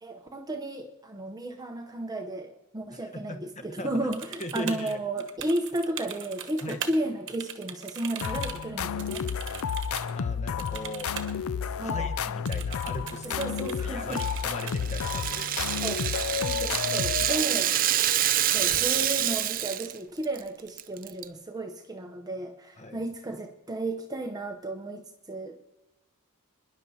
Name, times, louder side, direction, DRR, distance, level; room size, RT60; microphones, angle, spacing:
voice 1, 0.0-9.3 11.8-12.1 13.2-14.2 15.8-16.1 16.4-17.7 18.5-25.7, right 1 dB, 15° right, 3 dB, 0.8 m, -33 dB
voice 2, 3.1-3.9 4.4-5.0 6.6-6.8 10.1-11.1 11.8-13.5 13.8-15.8 22.8-23.0, left 1 dB, 30° left, 6 dB, 1.2 m, -39 dB
sound 1, 4.1-7.0 7.3-10.1 10.6-11.4 11.6-11.7 12.5-13.8 14.1-14.9 15.2-16.5 18.2-18.4 18.7-19.1 19.5-20.1, right 8 dB, 60° right, 1.2 m, -41 dB
sound 2, 8.2-17.7, left 7 dB, 65° left, 0.4 m, -31 dB
Rattle (instrument), 14.2-20.0 20.2-20.4 20.8-21.2, right 12 dB, 40° right, 0.4 m, -27 dB
26.5 x 11.0 x 2.8 m, 1.0 s
head